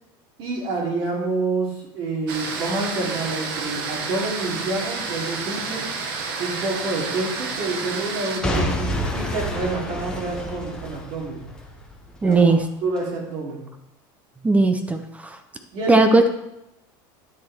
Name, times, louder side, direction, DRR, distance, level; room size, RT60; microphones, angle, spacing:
voice 1, 0.4-5.9 6.4-11.4 12.2-12.5 12.8-13.7 15.7-16.1, right 3 dB, 50° right, -2 dB, 3.5 m, -28 dB
sound 1, 2.3-8.4, right 4 dB, 80° right, 1.7 m, -30 dB
Boom / Shatter / Crushing, 8.4-12.4 13.0-13.1, equal, 5° left, 1.6 m, -28 dB
voice 2, 12.2-12.6 14.4-15.4 15.9-16.3, right 3 dB, 10° right, 8 dB, 0.7 m, -17 dB
10.0 x 6.5 x 4.5 m, 0.84 s
supercardioid pair, 135°, 11 cm